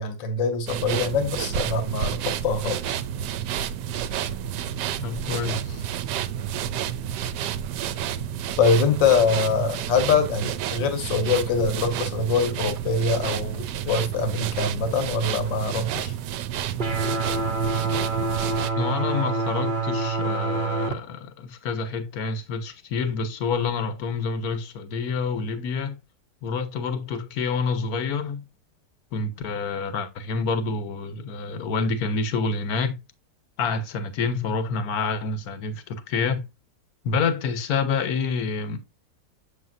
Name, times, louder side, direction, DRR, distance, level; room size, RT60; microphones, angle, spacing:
voice 1, 0.0-3.0 8.6-16.1, left 4 dB, 85° left, 1.9 m, -24 dB
sound 1, 0.7-18.7, right 10 dB, 75° right, 1.1 m, -30 dB
voice 2, 5.0-5.8 18.7-26.0 26.4-28.4 29.1-33.0 33.6-36.4 37.0-38.8, left 4 dB, 60° left, 1.2 m, -28 dB
sound 2, 16.8-20.9, right 3 dB, 45° right, 0.6 m, -26 dB
6.8 x 6.4 x 2.5 m
omnidirectional pair, 2.0 m